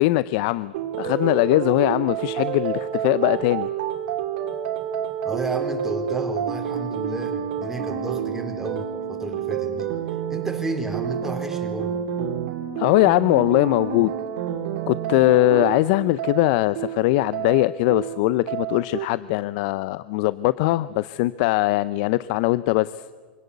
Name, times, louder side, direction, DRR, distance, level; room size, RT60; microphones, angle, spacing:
voice 1, 0.0-3.7 12.8-14.1 14.9-23.0, left 18 dB, 60° left, 16 dB, 0.6 m, -21 dB
sound 1, 0.7-19.0, right 9 dB, 70° right, 2.9 m, -29 dB
voice 2, 5.2-9.9 10.3-12.0, right 2 dB, 10° right, 4 dB, 4.0 m, -32 dB
25.0 x 17.5 x 8.3 m, 1.5 s
hypercardioid pair, 110°, 5 cm